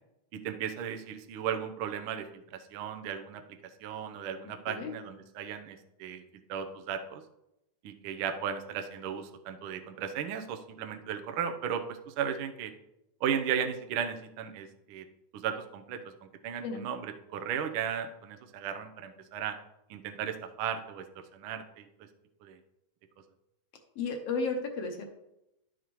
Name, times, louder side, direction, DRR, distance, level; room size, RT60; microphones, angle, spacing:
voice 1, 0.3-3.4 3.8-6.2 6.5-7.2 7.8-12.7 13.2-15.0 15.3-16.0 16.4-19.6 19.9-21.0 21.3-21.9 22.4-22.6, right 8 dB, 90° right, 6 dB, 1.1 m, -35 dB
voice 2, 24.0-25.0, left 4 dB, 65° left, 4 dB, 1.7 m, -33 dB
11.0 x 7.0 x 3.0 m, 0.86 s
omnidirectional pair, 3.4 m